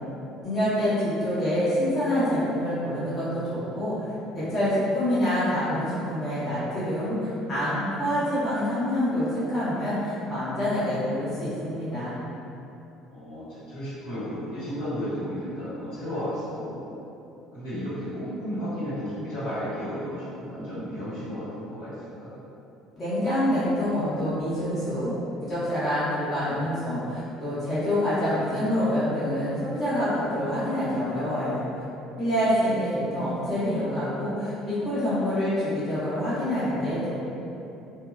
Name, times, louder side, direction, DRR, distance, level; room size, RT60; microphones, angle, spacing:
voice 1, 0.4-4.0 4.3-7.2 7.5-12.1 23.0-25.1 25.5-31.6 32.2-37.1, equal, 35° left, -13 dB, 1.1 m, -26 dB
voice 2, 13.1-16.8 17.5-22.3 32.6-32.8, equal, 70° left, -13 dB, 1.4 m, -33 dB
3.0 x 2.8 x 2.5 m, 2.9 s
figure-of-eight pair, 60°, 0 cm